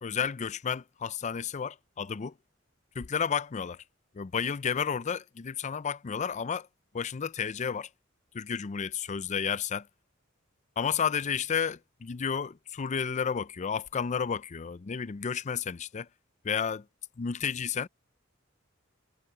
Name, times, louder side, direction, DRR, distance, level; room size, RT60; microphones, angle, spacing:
voice 1, 0.0-2.3 3.0-3.8 4.1-6.7 6.9-7.9 8.3-9.9 10.8-16.1 16.4-16.8 17.2-17.9, left 7 dB, 35° left, 0.4 m, -31 dB
head